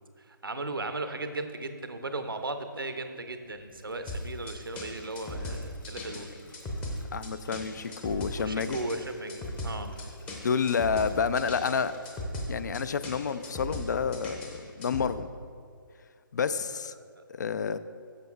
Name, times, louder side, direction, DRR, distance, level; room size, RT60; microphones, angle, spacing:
voice 1, 0.2-6.3 8.4-9.9 17.2-17.3, right 2 dB, 85° right, 8 dB, 0.7 m, -36 dB
sound 1, 3.4-13.8 14.1-14.2, left 1 dB, 70° left, 1.1 m, -52 dB
sound 2, 4.1-15.1, left 1 dB, 10° left, 0.7 m, -38 dB
voice 2, 7.1-8.8 10.4-11.9 12.5-14.5 14.8-15.3 16.3-16.9 17.3-17.8, left 6 dB, 55° left, 14 dB, 0.4 m, -29 dB
11.5 x 6.9 x 2.3 m, 2.1 s
figure-of-eight pair, 140°, 11 cm